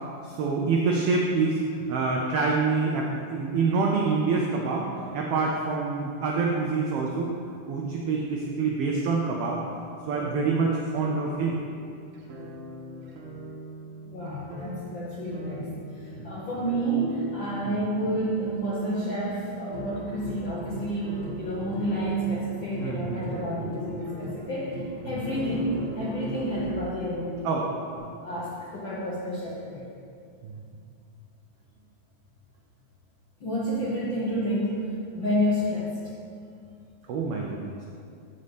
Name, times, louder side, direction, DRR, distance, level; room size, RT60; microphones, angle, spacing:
voice 1, 0.2-7.4 7.7-9.6 10.1-11.6 16.2-16.3 17.7-17.8 22.8-23.7 25.0-25.1 27.4-27.6 28.0-28.1 30.4-30.5 37.1-37.8, right 4 dB, 80° right, -1 dB, 1.3 m, -26 dB
sound 1, 10.2-28.0, right 1 dB, 60° right, 1.6 m, -43 dB
voice 2, 14.0-27.7 28.2-29.9 33.4-36.1, right 1 dB, 65° left, -7 dB, 1.1 m, -30 dB
sound 2, 19.7-26.6, equal, 40° right, 0.8 m, -39 dB
7.6 x 4.2 x 6.7 m, 2.4 s
omnidirectional pair, 3.4 m